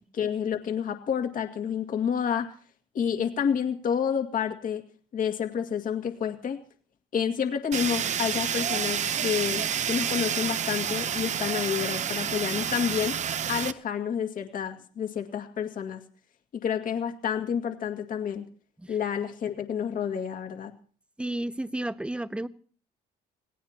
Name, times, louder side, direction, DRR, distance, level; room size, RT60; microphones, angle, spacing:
voice 1, 0.1-2.5 2.9-4.8 5.1-6.6 7.1-13.2 13.5-16.0 16.5-18.5 18.9-20.7, left 8 dB, 55° left, 6 dB, 2.1 m, -29 dB
Fire, 7.7-13.7, right 8 dB, 45° right, 0.8 m, -29 dB
voice 2, 21.2-22.5, right 1 dB, 5° right, 14 dB, 0.8 m, -31 dB
27.0 x 18.0 x 2.9 m, 0.43 s
cardioid pair, 110°, 17 cm